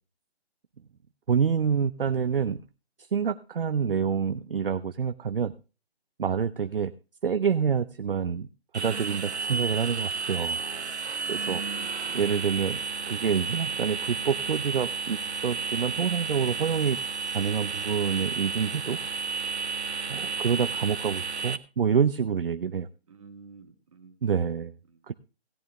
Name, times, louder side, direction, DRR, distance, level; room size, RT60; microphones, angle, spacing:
voice 1, 1.3-2.6 3.0-5.5 6.2-6.9 7.2-8.5 8.7-10.6 11.3-11.6 12.1-17.0 17.3-19.0 20.1-22.9 24.2-24.8 25.1-25.2, right 7 dB, 55° right, 11 dB, 0.6 m, -27 dB
sound 1, 8.7-21.6, right 5 dB, 90° right, 1.1 m, -32 dB
voice 2, 11.5-12.4 20.1-20.5 23.1-24.2 24.9-25.1, right 5 dB, 30° right, 3 dB, 1.7 m, -51 dB
17.0 x 8.9 x 3.5 m, 0.33 s
hypercardioid pair, 170°, 32 cm